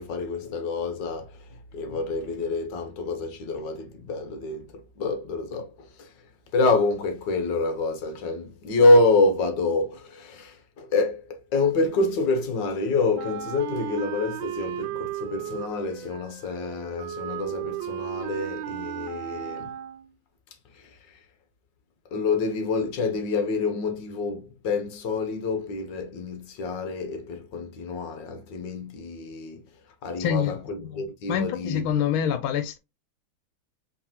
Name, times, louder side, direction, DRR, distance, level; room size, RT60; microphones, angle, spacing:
voice 1, 0.0-6.1 6.5-19.7 20.7-21.0 22.1-29.6 30.0-31.9, left 3 dB, 65° left, 1.5 m, -27 dB
Wind instrument woodwind instrument, 13.1-20.1, right 12 dB, 75° right, 1.4 m, -35 dB
voice 2, 30.2-30.6 31.3-32.8, left 8 dB, 85° left, 1.4 m, -25 dB
4.6 x 3.4 x 2.9 m
omnidirectional pair, 2.2 m